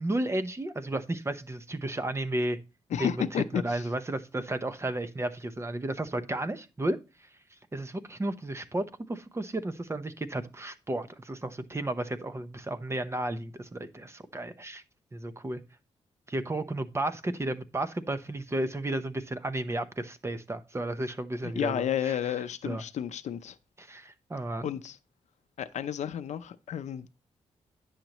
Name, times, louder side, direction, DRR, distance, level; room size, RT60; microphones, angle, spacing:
voice 1, 0.0-2.6 3.0-3.1 3.5-7.0 7.7-14.8 15.1-15.6 16.3-22.2 22.6-22.8 23.8-24.7, right 1 dB, 20° right, 0.8 m, -33 dB
voice 2, 2.9-3.9 21.4-23.6 24.6-25.0 25.6-27.1, left 9 dB, 75° left, 0.6 m, -32 dB
10.0 x 6.5 x 3.0 m
cardioid pair, 75°, 12 cm